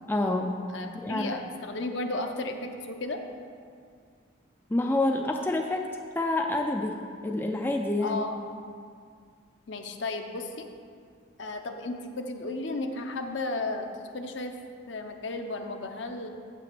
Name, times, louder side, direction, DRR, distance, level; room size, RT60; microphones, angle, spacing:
voice 1, 0.1-1.4 4.7-5.9 6.1-8.2, left 2 dB, 10° left, 2 dB, 0.3 m, -28 dB
voice 2, 0.7-3.2 8.0-8.4 9.7-10.7 11.4-14.5 14.9-16.3, left 2 dB, 65° left, 5 dB, 0.8 m, -34 dB
7.9 x 5.8 x 6.8 m, 2.2 s
head